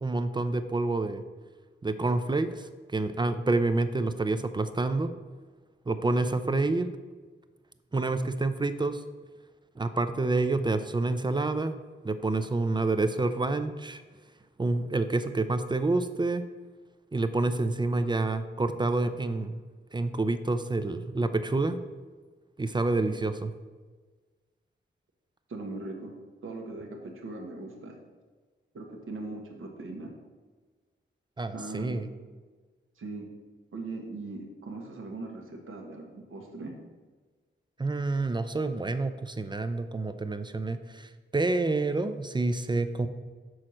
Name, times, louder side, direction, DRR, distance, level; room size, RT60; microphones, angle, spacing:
voice 1, 0.0-1.2 1.8-5.1 5.9-7.0 7.9-9.0 9.8-11.8 12.0-14.0 14.6-16.5 17.1-19.6 19.9-21.8 22.6-23.5 31.4-32.1 37.8-43.1, right 2 dB, 20° right, 10 dB, 0.4 m, -28 dB
voice 2, 25.5-26.1 26.4-27.9 28.7-30.1 31.5-32.0 33.0-33.2 33.7-36.7, right 2 dB, 85° right, 2 dB, 1.3 m, -39 dB
6.3 x 4.3 x 6.3 m, 1.4 s
wide cardioid pair, 100°, 21 cm